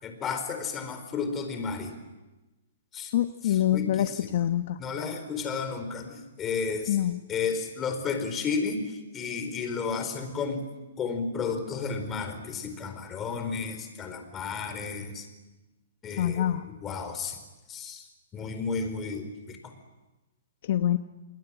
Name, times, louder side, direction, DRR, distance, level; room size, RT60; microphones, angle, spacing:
voice 1, 0.0-2.0 2.9-3.1 3.4-4.3 4.8-7.0 7.3-10.6 11.0-15.3 16.0-16.5 16.8-17.4 17.7-18.1 18.3-19.7, left 5 dB, 20° left, 7 dB, 4.6 m, -32 dB
voice 2, 3.1-4.8 6.9-7.2 16.2-16.7 20.6-21.0, left 11 dB, 55° left, 9 dB, 1.0 m, -25 dB
28.0 x 21.5 x 9.0 m, 1.1 s
hypercardioid pair, 145°, 0 cm